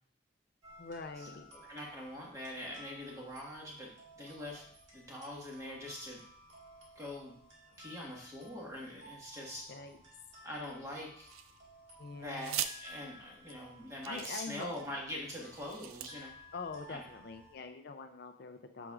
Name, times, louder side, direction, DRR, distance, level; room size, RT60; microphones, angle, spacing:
sound 1, 0.6-17.5, equal, 60° right, 1.9 m, -57 dB
voice 1, 0.8-1.5 9.7-10.0 12.0-12.6 14.1-14.8 16.5-18.9, left 4 dB, 50° left, 7 dB, 0.4 m, -44 dB
voice 2, 1.5-3.9 4.2-4.7 4.9-6.2 6.9-7.3 7.8-9.7 10.4-11.3 12.1-16.3 16.9-17.0, left 1 dB, 15° right, -3 dB, 1.4 m, -43 dB
sound 2, 11.3-11.8 12.4-12.7 13.5-13.6 14.0-14.9 15.5-16.1, right 10 dB, 90° right, 0.4 m, -40 dB
7.8 x 6.1 x 2.4 m, 0.63 s
head